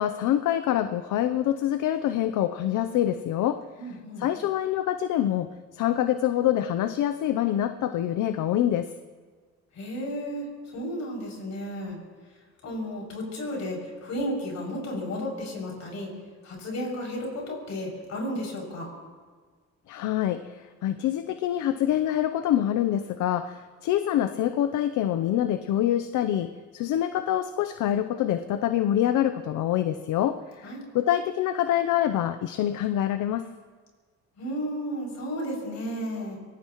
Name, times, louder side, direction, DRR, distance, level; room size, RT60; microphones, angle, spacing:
voice 1, 0.0-3.6 4.2-5.5 5.7-8.9 19.9-30.7 30.9-33.5, left 11 dB, 80° left, 10 dB, 0.7 m, -25 dB
voice 2, 3.8-4.3 9.7-12.0 12.6-16.1 16.4-18.9 30.6-30.8 34.4-36.4, equal, 65° left, -1 dB, 6.5 m, -33 dB
24.5 x 18.5 x 3.1 m, 1.5 s
cardioid pair, 90°, 30 cm